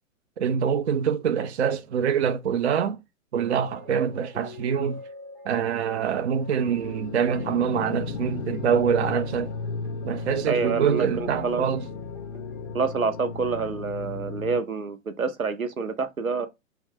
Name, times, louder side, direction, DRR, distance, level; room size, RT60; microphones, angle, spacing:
voice 1, 0.4-3.0 3.3-5.0 5.5-9.5 10.0-11.8, right 7 dB, 55° right, 0.5 m, -25 dB
sound 1, 3.4-12.8, left 2 dB, 5° right, 0.4 m, -45 dB
sound 2, 6.3-14.6, left 4 dB, 55° left, 0.6 m, -35 dB
voice 2, 10.5-11.6 12.7-16.5, right 4 dB, 90° right, 0.8 m, -27 dB
4.5 x 2.1 x 3.6 m
figure-of-eight pair, 115°, 40 cm